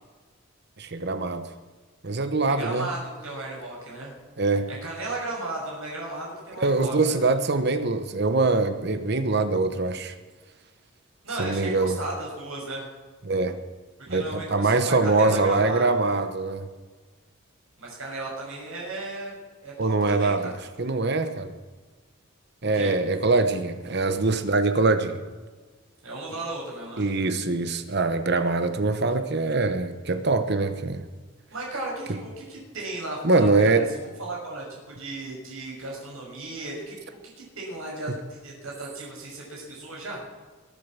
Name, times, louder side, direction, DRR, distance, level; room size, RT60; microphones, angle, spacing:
voice 1, 0.8-1.5 2.0-2.9 4.4-4.7 6.6-10.1 11.4-12.0 13.2-13.6 14.1-16.7 19.8-20.4 20.8-21.5 22.6-25.2 27.0-31.1 32.1-32.2 33.2-33.9 38.1-38.2, right 3 dB, 50° right, 10 dB, 1.0 m, -23 dB
voice 2, 2.4-4.1 4.7-7.2 11.2-12.8 14.1-16.2 17.8-19.4 19.6-20.5 22.7-22.9 26.0-27.0 31.5-37.0 37.4-40.2, right 2 dB, 75° right, -3 dB, 6.3 m, -35 dB
22.5 x 8.4 x 7.5 m, 1.3 s
head